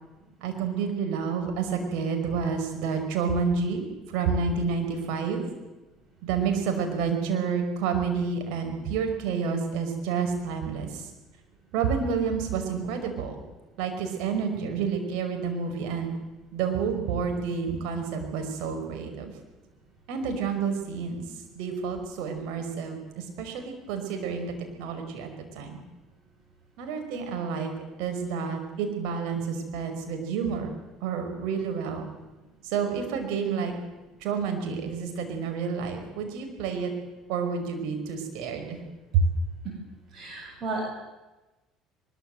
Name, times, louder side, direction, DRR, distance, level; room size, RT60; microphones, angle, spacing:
voice 1, 0.4-5.5 6.2-11.1 11.7-13.4 13.8-16.1 16.5-19.3 20.1-21.2 21.5-24.5 24.8-25.3 25.6-25.8 26.8-27.7 28.0-30.7 31.0-32.1 32.6-33.7 34.2-36.9 37.3-38.8 39.1-39.2, right 6 dB, 70° right, 4 dB, 5.5 m, -29 dB
voice 2, 40.1-40.8, right 3 dB, 45° right, 0 dB, 7.8 m, -33 dB
22.5 x 22.0 x 8.0 m, 1.1 s
hypercardioid pair, 60°, 0 cm